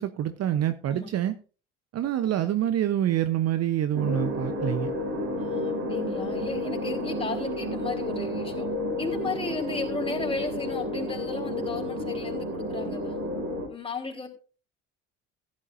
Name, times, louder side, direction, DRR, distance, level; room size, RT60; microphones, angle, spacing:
voice 1, 0.0-1.3 1.9-4.9, right 11 dB, 45° right, 11 dB, 0.8 m, -26 dB
sound 1, 3.9-13.7, left 1 dB, 70° right, 4.4 m, -31 dB
voice 2, 5.4-8.7 9.0-13.2 13.7-14.3, left 3 dB, 15° left, 0 dB, 3.7 m, -34 dB
16.0 x 10.5 x 2.6 m, 0.37 s
hypercardioid pair, 60°, 36 cm